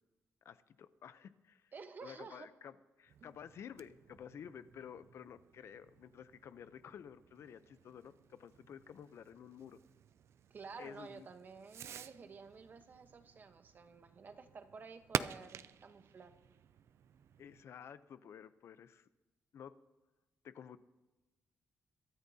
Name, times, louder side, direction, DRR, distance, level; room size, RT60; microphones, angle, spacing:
voice 1, 0.4-1.7 2.0-9.8 10.8-11.3 17.4-19.1 19.5-19.8 20.4-20.8, left 8 dB, 60° left, 13 dB, 0.6 m, -52 dB
voice 2, 1.7-2.5 3.2-3.3 10.5-16.3, right 5 dB, 40° right, 9 dB, 1.0 m, -52 dB
Fireworks, 3.1-17.7, right 9 dB, 60° right, 0.4 m, -48 dB
22.5 x 13.0 x 2.8 m, 1.1 s
cardioid pair, 140°, 5 cm